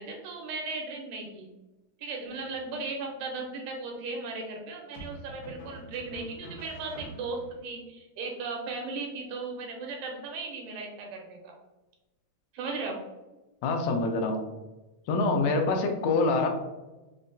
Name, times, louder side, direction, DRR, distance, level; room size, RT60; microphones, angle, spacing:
voice 1, 0.0-1.5 2.0-11.5 12.5-13.0, right 3 dB, 85° right, 1 dB, 2.3 m, -36 dB
sound 1, 2.3-2.9 4.9-7.6, equal, 65° left, 1.4 m, -46 dB
voice 2, 13.6-14.4 15.1-16.5, left 3 dB, 80° left, 3 dB, 2.0 m, -25 dB
5.3 x 2.1 x 2.6 m, 1.1 s
omnidirectional pair, 3.6 m